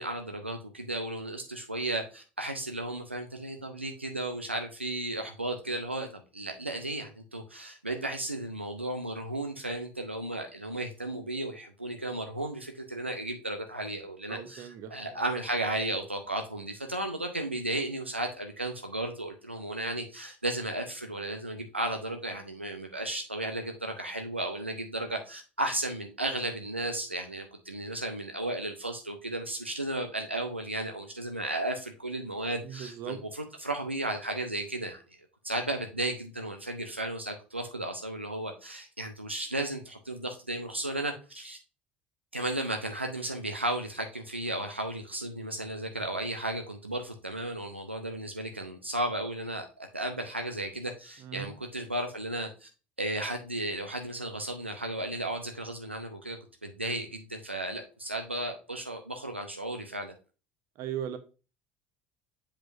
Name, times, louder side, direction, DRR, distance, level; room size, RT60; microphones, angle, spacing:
voice 1, 0.0-35.2 35.4-41.6 42.3-52.7 53.0-60.1, right 1 dB, 90° right, 4 dB, 0.5 m, -34 dB
voice 2, 14.3-15.2 32.6-33.2 51.2-51.5 60.8-61.2, right 9 dB, 50° right, 10 dB, 0.9 m, -38 dB
7.5 x 5.0 x 2.6 m, 0.33 s
figure-of-eight pair, 65°, 6 cm